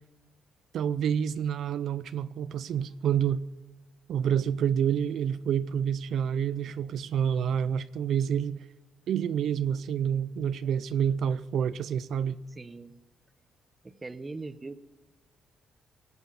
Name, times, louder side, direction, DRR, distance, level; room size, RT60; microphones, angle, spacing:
voice 1, 0.7-3.4 4.1-8.6 9.1-12.4, right 8 dB, 70° right, 0.4 m, -28 dB
voice 2, 12.5-13.0 13.8-14.8, right 3 dB, 25° right, 0.8 m, -41 dB
18.0 x 8.0 x 7.0 m
cardioid pair, 90°, 0 cm